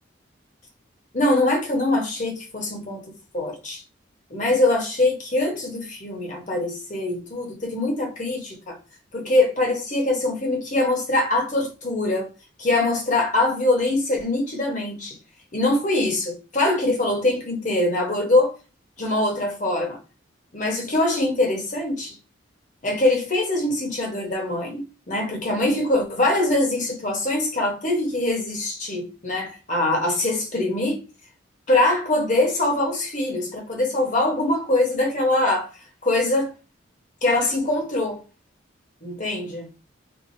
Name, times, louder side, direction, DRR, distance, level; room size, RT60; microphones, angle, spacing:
voice 1, 1.1-3.0 3.3-3.8 4.3-8.8 9.1-12.3 12.6-15.2 15.5-18.5 19.0-20.0 20.5-22.2 22.8-24.8 25.1-31.0 31.7-35.7 36.0-36.5 37.2-38.2 39.0-39.7, left 2 dB, 40° left, 1.1 m, -23 dB
4.6 x 2.4 x 2.6 m
head